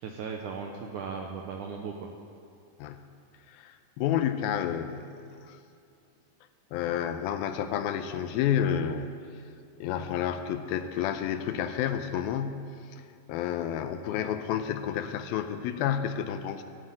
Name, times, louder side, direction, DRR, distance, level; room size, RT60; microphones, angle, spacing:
voice 1, 0.0-2.1, right 5 dB, 75° right, 2 dB, 1.8 m, -37 dB
voice 2, 3.5-5.6 6.7-9.2 9.8-13.0 13.3-16.6, left 9 dB, 80° left, 9 dB, 2.3 m, -30 dB
15.0 x 7.7 x 8.9 m, 2.5 s
omnidirectional pair, 4.5 m